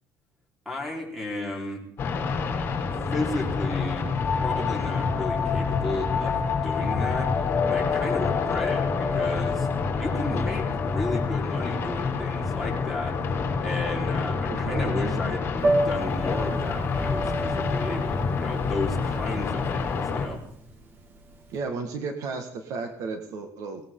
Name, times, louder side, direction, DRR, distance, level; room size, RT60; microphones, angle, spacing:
voice 1, 0.7-1.8 3.1-4.1 4.4-7.4 7.7-9.7 9.9-13.1 13.6-15.5 15.8-20.4, left 2 dB, ahead, -1 dB, 4.4 m, -33 dB
sound 1, 2.0-20.3, left 4 dB, 35° left, 3.0 m, -28 dB
sound 2, 4.2-13.5, left 6 dB, 15° left, 3.3 m, -31 dB
voice 2, 14.4-15.3 21.5-23.8, right 4 dB, 60° right, 5 dB, 1.8 m, -33 dB
Piano, 15.6-21.5, right 1 dB, 35° right, 1.8 m, -31 dB
20.0 x 18.5 x 3.9 m, 0.69 s
cardioid pair, 170°, 6 cm